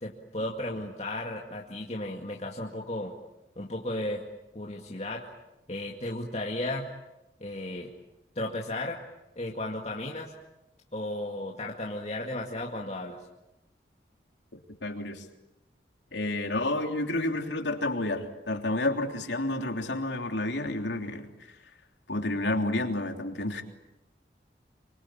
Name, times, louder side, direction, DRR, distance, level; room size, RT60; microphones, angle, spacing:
voice 1, 0.0-3.2 3.6-4.2 4.5-5.3 5.7-6.9 7.4-7.9 8.4-9.0 9.4-10.3 10.9-13.2, left 1 dB, 35° left, -1 dB, 2.2 m, -34 dB
voice 2, 14.5-15.2 16.1-21.3 22.1-23.6, left 2 dB, 85° left, 4 dB, 3.3 m, -30 dB
26.0 x 24.0 x 8.7 m, 0.93 s
head